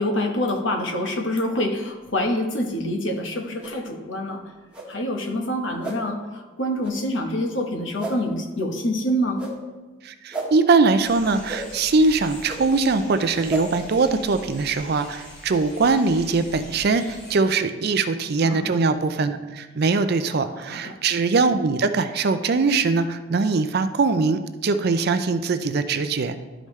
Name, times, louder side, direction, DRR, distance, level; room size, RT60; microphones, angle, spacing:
voice 1, 0.0-4.5 4.9-9.4 18.4-18.7 20.7-21.0, left 1 dB, 65° left, 3 dB, 1.1 m, -26 dB
sound 1, 3.6-3.8 4.7-4.9 5.8-6.0 6.8-6.9 8.0-8.2 9.4-9.5 10.3-10.5 11.5-11.6 12.5-12.6 13.5-13.6, right 3 dB, 5° right, 1.4 m, -31 dB
voice 2, 10.0-26.4, right 4 dB, 50° right, 10 dB, 0.4 m, -22 dB
sound 2, 11.0-17.3, equal, 35° left, 2.5 m, -43 dB
12.0 x 5.1 x 3.2 m, 1.2 s
head